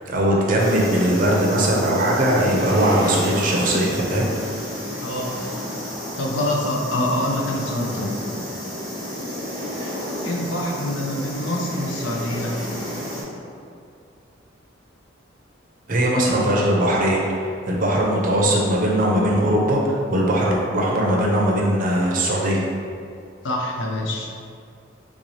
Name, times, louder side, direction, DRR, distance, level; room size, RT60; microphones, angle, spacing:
voice 1, 0.1-4.3 15.9-22.6, right 1 dB, 45° right, -2 dB, 0.5 m, -20 dB
sound 1, 0.6-13.2, equal, 20° left, 0.9 m, -31 dB
voice 2, 5.0-5.4 6.2-8.2 10.2-12.5 23.4-24.3, left 1 dB, 65° left, -1 dB, 0.5 m, -25 dB
3.6 x 2.7 x 3.1 m, 2.4 s
head